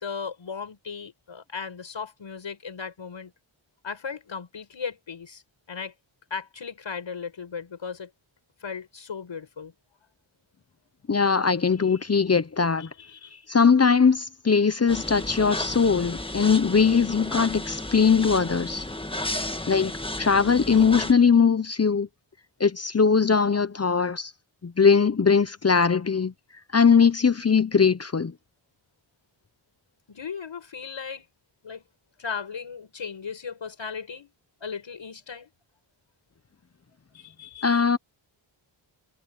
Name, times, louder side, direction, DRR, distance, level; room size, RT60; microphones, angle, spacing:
voice 1, 0.0-3.3 3.8-5.4 5.7-5.9 6.3-8.1 8.6-9.7 13.1-13.4 30.1-31.3 31.6-31.8 32.2-34.3 34.6-35.5 37.1-37.8, left 6 dB, 65° left, 6.6 m, -36 dB
voice 2, 11.1-12.9 13.5-18.8 19.7-19.9 20.2-22.1 22.6-24.3 24.6-26.3 26.7-28.3 37.6-38.0, left 5 dB, 30° left, 0.8 m, -20 dB
sound 1, 14.9-21.1, left 1 dB, 10° left, 1.6 m, -33 dB
wide cardioid pair, 80°, 48 cm